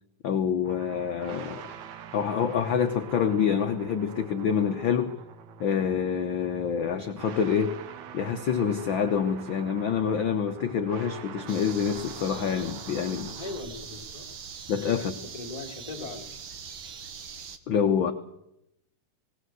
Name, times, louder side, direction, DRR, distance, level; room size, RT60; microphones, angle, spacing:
voice 1, 0.2-1.7 2.1-5.2 5.6-7.8 8.1-13.4 14.7-15.2 17.7-18.1, left 7 dB, 80° left, 7 dB, 1.1 m, -27 dB
sound 1, 0.6-13.6, right 8 dB, 75° right, 2.4 m, -45 dB
sound 2, 11.5-17.6, right 6 dB, 50° right, 1.6 m, -42 dB
voice 2, 13.3-14.3 15.3-16.3, left 3 dB, 15° left, 0 dB, 2.2 m, -39 dB
19.0 x 18.5 x 7.8 m, 0.82 s
omnidirectional pair, 3.5 m